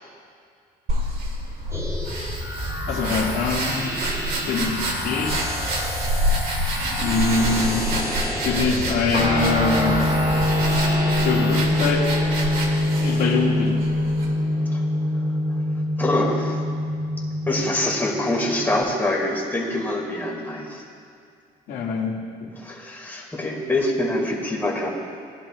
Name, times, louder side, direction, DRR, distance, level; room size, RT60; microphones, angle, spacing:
sound 1, 0.9-14.3, right 1 dB, 65° right, 2.6 m, -28 dB
sound 2, 1.7-11.7, equal, 20° right, 2.6 m, -30 dB
voice 1, 2.9-3.9 4.5-5.8 7.0-7.9 8.4-10.0 11.2-12.1 13.0-13.9 21.7-22.5, left 4 dB, 80° left, -2 dB, 2.2 m, -24 dB
Guitar, 9.1-18.8, left 1 dB, 40° right, 3.1 m, -23 dB
voice 2, 16.0-16.6 17.5-20.8 22.6-24.9, left 1 dB, 10° left, -2 dB, 2.4 m, -25 dB
19.5 x 11.0 x 2.5 m, 2.4 s
cardioid pair, 110°, 17 cm